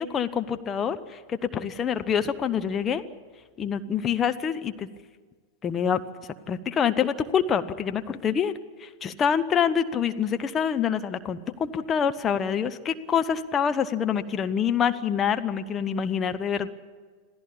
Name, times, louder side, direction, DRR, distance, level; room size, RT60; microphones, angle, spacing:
voice 1, 0.0-3.0 3.6-4.9 5.6-6.0 6.5-16.7, left 7 dB, 25° left, 8 dB, 1.1 m, -26 dB
27.0 x 16.5 x 8.7 m, 1.5 s
figure-of-eight pair, 90°, 0 cm